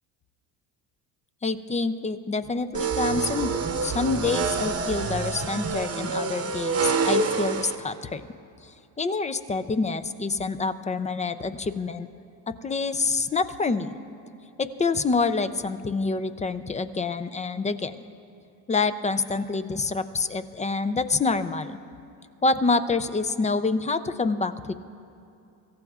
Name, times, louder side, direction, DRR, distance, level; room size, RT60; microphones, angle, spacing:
voice 1, 1.4-3.5 3.8-8.2 8.6-12.1 12.5-13.9 14.6-18.0 18.7-21.8 22.4-24.7, left 4 dB, 15° left, 11 dB, 0.3 m, -27 dB
sound 1, 2.7-7.8, right 4 dB, 30° right, 0.9 m, -27 dB
25.5 x 15.0 x 2.4 m, 2.6 s
cardioid pair, 100°, 47 cm